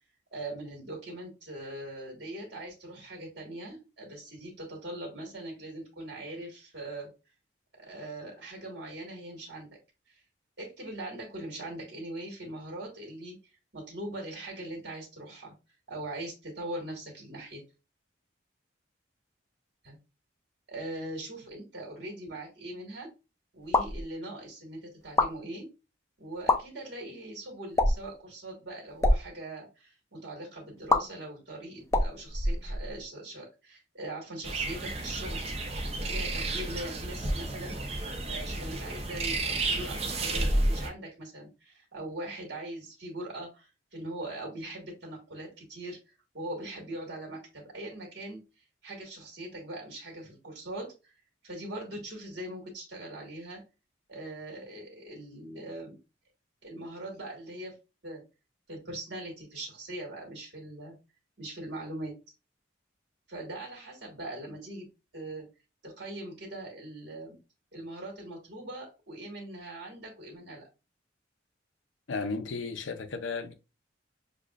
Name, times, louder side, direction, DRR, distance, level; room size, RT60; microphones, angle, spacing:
voice 1, 0.3-7.1 7.7-9.8 10.1-10.2 10.6-13.4 13.7-15.5 15.9-17.6 19.8-20.0 20.7-23.1 23.5-25.7 26.2-35.7 36.0-46.0 46.3-48.4 48.8-51.1 51.4-53.6 54.1-56.0 56.6-57.7 58.0-58.2 58.7-61.0 61.4-62.2 63.3-64.9 65.1-65.5 65.8-67.4 67.7-70.7, right 1 dB, 65° right, 1.7 m, -41 dB
sound 1, 23.6-24.0 25.0-25.3 26.3-26.6 27.7-28.1 28.9-29.2 30.9-31.0 31.9-33.0, left 2 dB, 15° left, 0.5 m, -25 dB
sound 2, 34.4-40.9, right 2 dB, 30° right, 0.7 m, -31 dB
voice 2, 72.1-73.5, left 4 dB, 85° left, 0.7 m, -34 dB
6.6 x 2.4 x 2.4 m
head